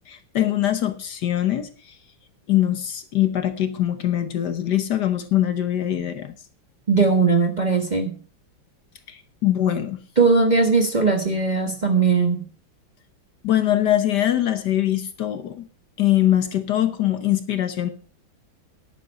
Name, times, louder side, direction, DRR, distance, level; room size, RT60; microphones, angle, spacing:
voice 1, 0.1-1.9 2.5-6.3 9.1-10.0 13.4-15.6 16.0-17.9, left 12 dB, 60° left, 10 dB, 1.4 m, -22 dB
voice 2, 6.9-8.2 10.2-12.5, right 4 dB, 25° right, 4 dB, 1.2 m, -19 dB
11.0 x 9.1 x 5.6 m, 0.41 s
omnidirectional pair, 2.2 m